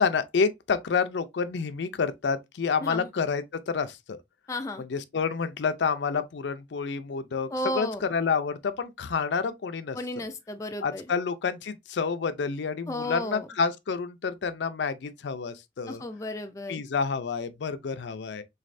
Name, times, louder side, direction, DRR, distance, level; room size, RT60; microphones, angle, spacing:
voice 1, 0.0-4.2 4.8-7.5 7.7-10.0 10.8-16.0 16.7-18.4, left 5 dB, 75° left, 0.4 m, -29 dB
voice 2, 4.5-4.8 7.5-8.0 9.9-11.1 12.9-13.5 15.9-16.8, left 1 dB, 15° left, 0.4 m, -33 dB
3.9 x 3.2 x 2.5 m
head